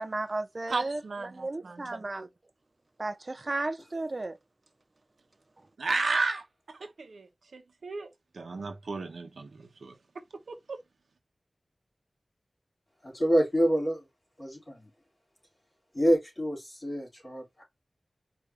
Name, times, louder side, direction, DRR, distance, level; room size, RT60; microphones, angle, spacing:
voice 1, 0.0-1.0 1.3-2.3 3.0-4.4, right 2 dB, 40° right, 0.3 m, -34 dB
voice 2, 0.7-1.9 5.8-8.1 8.3-10.0 10.5-10.8, right 3 dB, 85° right, 0.9 m, -34 dB
voice 3, 13.0-14.0 14.4-14.9 15.9-17.6, equal, 30° left, 3.0 m, -27 dB
4.9 x 2.6 x 3.3 m
wide cardioid pair, 80°, 0 cm